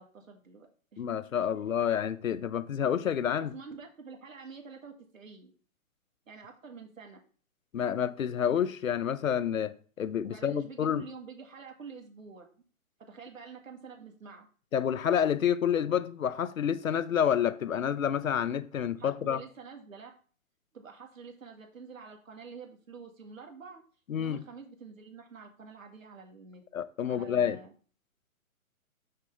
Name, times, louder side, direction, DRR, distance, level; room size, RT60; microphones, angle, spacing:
voice 1, 0.0-1.0 1.5-1.6 3.3-5.5 6.3-7.2 10.2-12.5 13.0-14.5 19.0-20.1 20.7-23.8 24.2-26.6 27.1-27.7, right 5 dB, 65° right, 1.9 m, -47 dB
voice 2, 1.0-3.5 7.7-11.0 14.7-19.4 24.1-24.4 26.7-27.6, left 8 dB, 70° left, 0.7 m, -29 dB
6.4 x 6.0 x 3.3 m
figure-of-eight pair, 135°, 43 cm